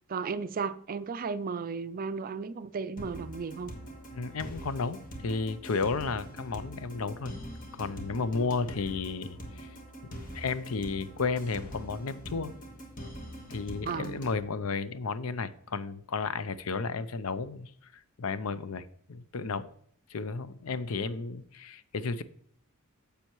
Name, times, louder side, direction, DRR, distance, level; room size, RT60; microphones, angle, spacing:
voice 1, 0.1-3.7 13.9-14.1, right 5 dB, 40° right, 0.4 m, -34 dB
sound 1, 3.0-14.4, right 1 dB, 40° left, 1.3 m, -43 dB
voice 2, 4.1-7.3 7.7-9.8 10.0-10.1 10.3-12.5 13.5-19.7 20.1-22.2, left 4 dB, 75° left, 0.6 m, -33 dB
9.9 x 6.9 x 3.0 m
head